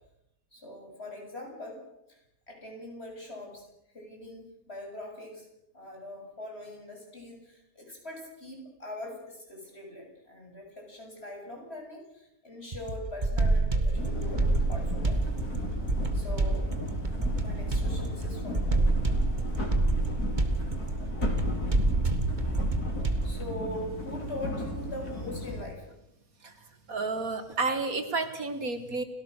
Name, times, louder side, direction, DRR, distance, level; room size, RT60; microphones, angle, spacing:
voice 1, 0.5-1.8 2.1-2.2 2.5-3.7 3.9-5.5 5.7-15.2 16.1-16.7 17.4-18.8 23.2-25.9, left 1 dB, 40° left, 1 dB, 7.7 m, -42 dB
sound 1, 12.7-23.4, right 2 dB, 30° right, 1.9 m, -28 dB
sound 2, 13.9-25.6, left 1 dB, 80° left, 4.9 m, -36 dB
voice 2, 26.9-29.0, right 3 dB, 65° right, 8 dB, 2.4 m, -31 dB
30.0 x 18.0 x 6.6 m, 0.83 s
omnidirectional pair, 1.6 m